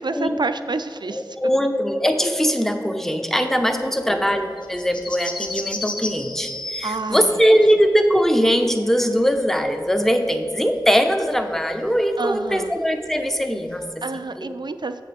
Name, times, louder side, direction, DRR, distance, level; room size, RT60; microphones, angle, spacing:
voice 1, 0.0-1.4 3.8-4.2 6.8-7.4 12.2-12.7 14.0-15.0, right 3 dB, 75° right, 10 dB, 0.4 m, -28 dB
voice 2, 1.1-13.9 14.4-14.5, equal, 5° left, 6 dB, 0.7 m, -21 dB
sound 1, 3.6-10.0 10.2-13.8, left 2 dB, 85° left, 0.6 m, -34 dB
7.7 x 6.3 x 5.1 m, 2.1 s
wide cardioid pair, 50°, 8 cm